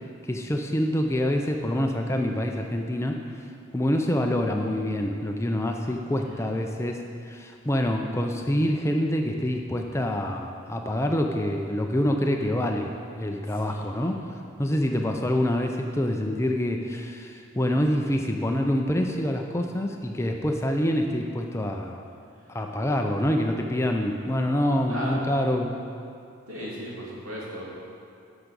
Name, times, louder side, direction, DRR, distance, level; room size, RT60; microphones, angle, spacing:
voice 1, 0.3-3.2 3.7-7.0 7.3-14.2 14.6-22.0 22.5-25.7, left 1 dB, 15° left, 3 dB, 0.5 m, -26 dB
voice 2, 13.5-14.1 24.9-25.3 26.5-27.6, equal, 80° right, -6 dB, 2.8 m, -37 dB
9.9 x 6.0 x 6.8 m, 2.4 s
head